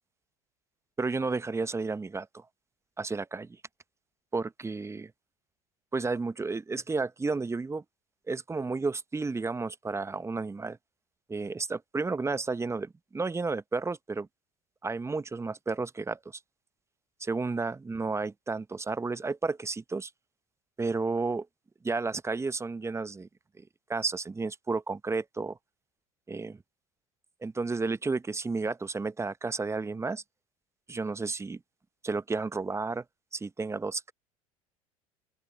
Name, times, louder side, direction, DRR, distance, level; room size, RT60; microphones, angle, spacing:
voice 1, 1.0-2.4 3.0-3.6 4.3-5.1 5.9-7.8 8.3-10.8 11.3-14.3 14.8-16.4 17.2-20.1 20.8-21.5 21.8-23.3 23.6-23.7 23.9-25.6 26.3-26.6 27.4-30.2 30.9-31.6 32.0-33.0 33.3-34.1, right 3 dB, 15° right, 1.1 m, -32 dB
open air
figure-of-eight pair, 70°, 18 cm